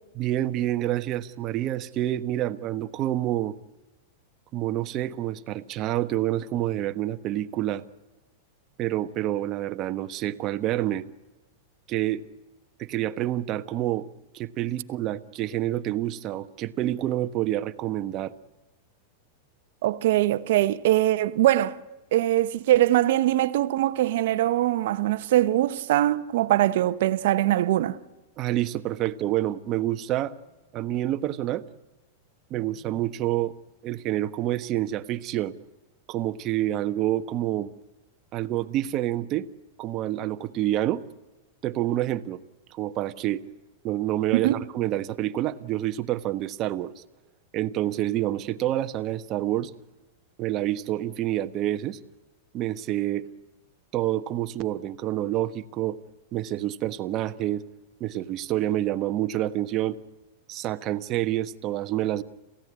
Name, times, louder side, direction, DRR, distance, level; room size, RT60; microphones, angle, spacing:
voice 1, 0.1-3.5 4.5-7.8 8.8-11.1 11.9-12.2 12.8-14.1 14.3-18.3 28.4-30.3 30.7-31.6 32.5-33.5 33.8-35.6 36.1-37.7 38.3-39.5 39.8-41.0 41.6-42.4 42.7-43.4 43.8-47.0 47.5-49.7 50.4-52.0 52.5-53.3 53.9-56.0 56.3-57.6 58.0-60.0 60.5-62.2, right 13 dB, 40° right, 1.3 m, -28 dB
voice 2, 19.8-21.8 22.1-28.0 44.3-44.6, right 14 dB, 70° right, 1.1 m, -22 dB
27.5 x 16.0 x 9.6 m
hypercardioid pair, 115°, 0 cm